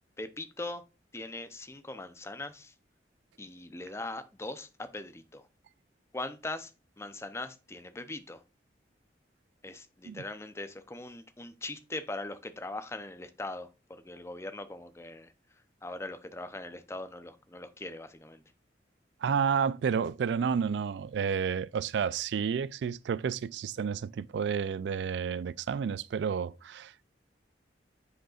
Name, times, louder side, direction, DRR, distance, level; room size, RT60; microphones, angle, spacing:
voice 1, 0.2-0.8 1.1-2.7 3.4-5.5 6.1-6.7 7.0-8.4 9.6-15.3 15.8-18.4, left 2 dB, 15° left, 0.6 m, -41 dB
voice 2, 19.2-27.0, right 6 dB, 80° right, 0.3 m, -30 dB
9.0 x 5.1 x 2.4 m
head